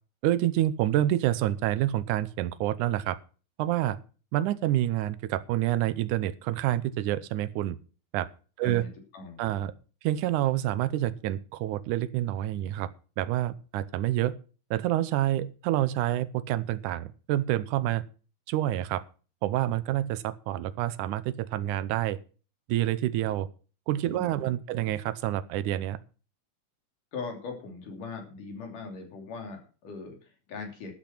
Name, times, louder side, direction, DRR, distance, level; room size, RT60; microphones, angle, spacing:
voice 1, 0.2-3.2 3.6-4.0 4.3-7.8 8.1-8.3 8.6-8.9 9.4-9.7 10.0-12.9 13.2-14.4 14.7-18.0 18.5-19.0 19.4-22.2 22.7-23.5 23.9-26.0, right 13 dB, 85° right, 14 dB, 2.3 m, -28 dB
voice 2, 8.6-9.5 24.1-24.8 27.1-30.9, left 4 dB, 85° left, 3 dB, 4.6 m, -40 dB
12.5 x 8.6 x 5.9 m, 0.37 s
omnidirectional pair, 3.6 m